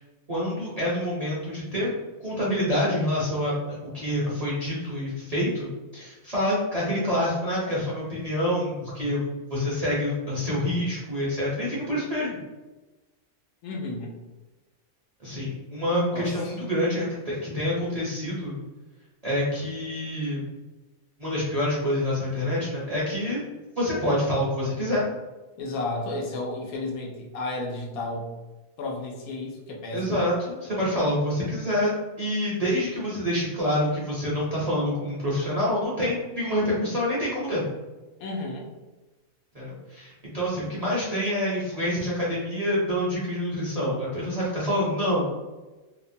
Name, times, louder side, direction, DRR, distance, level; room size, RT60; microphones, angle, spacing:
voice 1, 0.3-1.9 2.2-12.4 15.2-18.6 19.2-20.4 21.2-23.4 23.8-25.0 29.9-37.6 39.5-45.3, left 1 dB, 45° right, -8 dB, 0.5 m, -27 dB
voice 2, 13.6-14.1 16.1-16.5 25.6-28.3 28.8-30.1 38.2-38.7, left 2 dB, 85° left, 0 dB, 1.1 m, -32 dB
2.8 x 2.1 x 2.6 m, 1.2 s
omnidirectional pair, 1.5 m